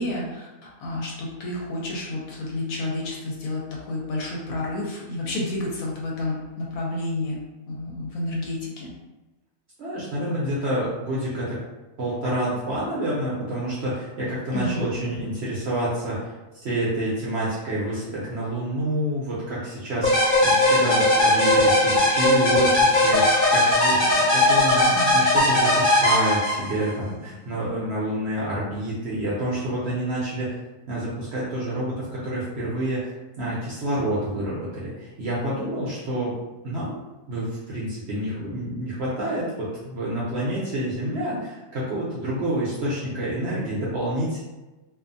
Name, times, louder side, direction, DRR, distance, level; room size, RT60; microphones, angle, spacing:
voice 1, 0.0-8.9 14.5-14.9 24.9-25.2, left 2 dB, 70° left, -3 dB, 1.1 m, -30 dB
voice 2, 9.8-11.6 12.0-30.6 30.9-33.1 33.4-36.3 36.6-37.0 37.3-44.4, right 1 dB, 60° right, -7 dB, 0.7 m, -28 dB
sound 1, 20.0-26.9, left 1 dB, 45° left, 0.8 m, -19 dB
2.6 x 2.4 x 2.5 m, 1.1 s
omnidirectional pair, 1.6 m